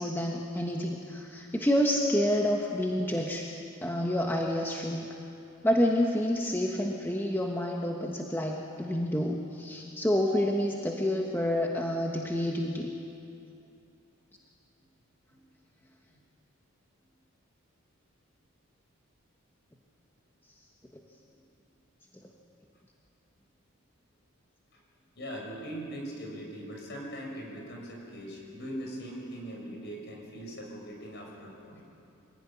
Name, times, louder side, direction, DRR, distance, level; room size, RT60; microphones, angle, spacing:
voice 1, 0.0-3.5 3.8-5.1 5.6-12.9, left 1 dB, 10° left, 0 dB, 1.4 m, -28 dB
voice 2, 25.2-31.8, equal, 55° left, 0 dB, 6.3 m, -41 dB
25.5 x 17.0 x 10.0 m, 2.7 s
head